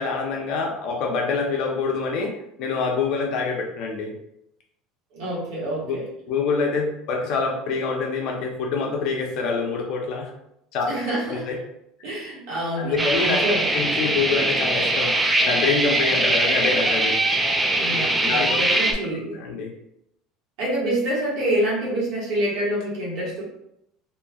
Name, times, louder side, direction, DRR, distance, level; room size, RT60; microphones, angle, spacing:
voice 1, 0.0-4.1 5.8-6.0 6.3-10.3 10.7-10.8 11.3-11.6 12.8-13.4 13.7-17.2 18.2-18.8 19.3-19.7, left 4 dB, 60° left, 1 dB, 0.7 m, -26 dB
voice 2, 5.1-6.0 10.9-11.6 12.0-13.7 17.7-19.4 20.6-23.4, right 1 dB, 70° right, -5 dB, 1.4 m, -27 dB
sound 1, 13.0-18.9, right 1 dB, 10° right, 0.3 m, -22 dB
3.0 x 2.6 x 2.4 m, 0.78 s
cardioid pair, 140°, 0 cm